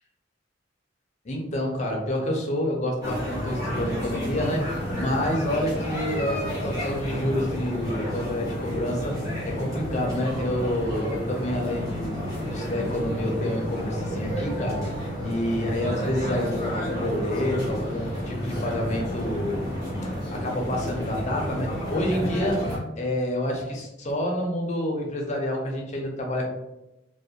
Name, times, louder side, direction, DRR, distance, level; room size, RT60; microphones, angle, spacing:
voice 1, 1.2-9.2 9.5-12.2 12.5-26.5, left 1 dB, 35° left, 1 dB, 0.5 m, -28 dB
sound 1, 3.0-22.8, equal, 15° right, 0.9 m, -31 dB
2.4 x 2.1 x 2.7 m, 0.96 s
head